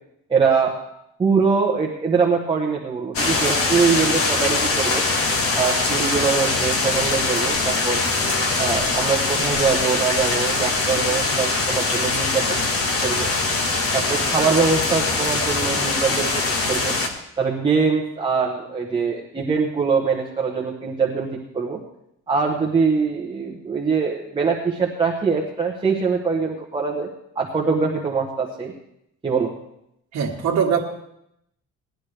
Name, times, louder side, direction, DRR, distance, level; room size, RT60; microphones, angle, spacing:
voice 1, 0.3-0.7 1.2-5.0 5.6-8.0 8.6-12.6 13.0-13.3 13.9-16.4 16.7-16.9 17.4-21.8 22.3-27.1 27.4-28.7 29.2-29.5, right 5 dB, 15° right, -1 dB, 1.0 m, -23 dB
sound 1, 3.1-17.1, left 3 dB, 50° left, 1.5 m, -22 dB
voice 2, 30.1-30.8, right 7 dB, 65° right, -5 dB, 1.5 m, -21 dB
18.0 x 10.5 x 3.4 m, 0.78 s
cardioid pair, 155°, 30 cm